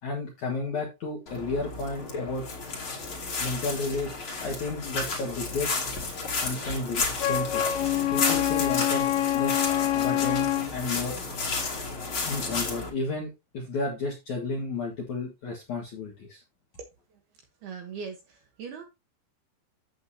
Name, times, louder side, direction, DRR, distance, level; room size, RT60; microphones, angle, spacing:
voice 1, 0.0-2.4 3.4-4.1 4.4-5.7 6.4-7.6 8.1-9.7 9.9-11.2 12.2-16.4, left 3 dB, 60° left, -1 dB, 2.0 m, -32 dB
sound 1, 1.3-12.9, left 3 dB, 35° left, 2.3 m, -32 dB
Wind instrument woodwind instrument, 7.2-10.7, left 12 dB, 80° left, 2.8 m, -26 dB
voice 2, 17.6-18.8, right 6 dB, 70° right, 4 dB, 2.5 m, -39 dB
9.3 x 8.3 x 2.8 m, 0.25 s
omnidirectional pair, 5.8 m